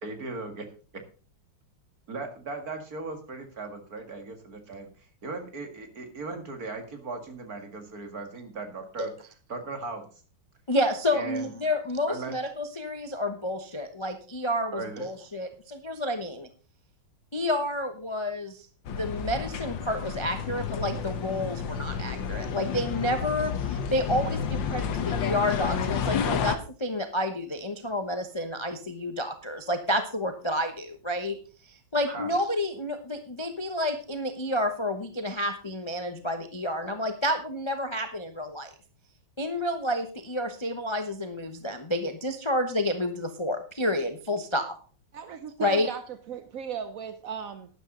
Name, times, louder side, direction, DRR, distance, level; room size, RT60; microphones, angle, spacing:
voice 1, 0.0-0.7 2.1-9.1 9.5-10.0 11.1-11.5 12.1-12.3 14.7-15.1 32.1-32.3, right 3 dB, 45° right, 5 dB, 2.4 m, -37 dB
voice 2, 10.7-16.5 17.3-31.4 31.7-38.7 39.4-44.6 45.6-45.9, left 1 dB, 25° left, 7 dB, 0.6 m, -30 dB
sound 1, 18.8-26.6, left 7 dB, 65° left, 1.6 m, -30 dB
voice 3, 45.1-46.0 46.3-47.7, right 7 dB, 65° right, 10 dB, 0.8 m, -36 dB
12.5 x 10.5 x 3.9 m, 0.37 s
omnidirectional pair, 2.4 m